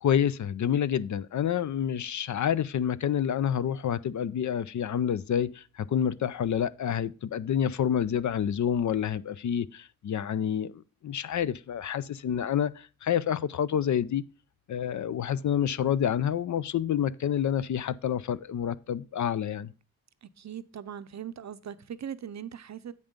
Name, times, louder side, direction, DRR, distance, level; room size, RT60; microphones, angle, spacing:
voice 1, 0.0-14.2 14.7-19.7, left 9 dB, 55° left, 0.5 m, -28 dB
voice 2, 20.4-22.9, right 9 dB, 50° right, 0.6 m, -40 dB
8.0 x 5.4 x 5.1 m
cardioid pair, 60°, 36 cm